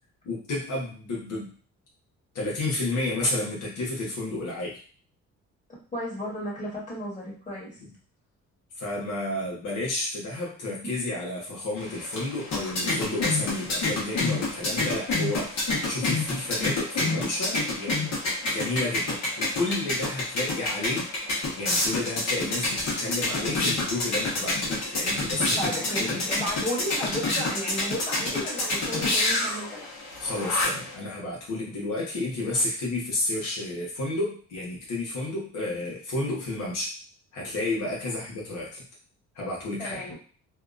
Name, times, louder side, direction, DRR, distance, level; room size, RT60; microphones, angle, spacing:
voice 1, 0.2-1.5 2.3-4.8 7.8-7.9 8.8-18.1 18.5-21.1 21.6-25.7 26.1-26.2 30.2-36.9 37.3-38.8 39.3-40.1, left 2 dB, 80° left, -4 dB, 1.1 m, -31 dB
voice 2, 5.9-7.8 25.6-29.9 39.8-40.1, equal, 25° left, -5 dB, 1.4 m, -33 dB
sound 1, 11.8-30.9, left 2 dB, 65° left, 1.1 m, -28 dB
2.7 x 2.2 x 2.5 m, 0.40 s
cardioid pair, 90°, 30 cm